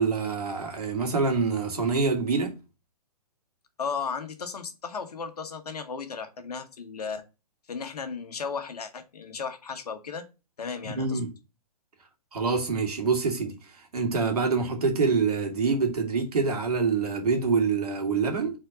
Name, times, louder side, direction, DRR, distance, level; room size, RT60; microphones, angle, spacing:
voice 1, 0.0-2.5 10.8-11.3 12.3-13.6 13.9-18.5, right 4 dB, 75° right, 2.0 m, -26 dB
voice 2, 3.8-7.2 7.7-10.2 10.6-11.2, left 5 dB, 75° left, 1.3 m, -35 dB
4.4 x 4.3 x 5.0 m
hypercardioid pair, 120°, 20 cm